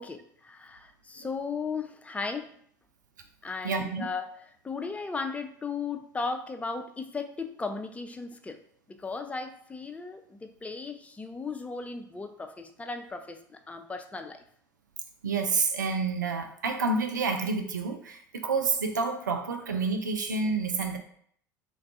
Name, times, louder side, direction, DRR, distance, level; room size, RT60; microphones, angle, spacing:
voice 1, 0.0-2.5 3.4-4.3 4.6-8.6 8.9-14.4, left 4 dB, 15° left, 6 dB, 0.4 m, -36 dB
voice 2, 3.6-4.1 15.2-21.0, right 4 dB, 80° right, 5 dB, 0.4 m, -29 dB
3.4 x 2.3 x 3.6 m, 0.62 s
figure-of-eight pair, 70°, 10 cm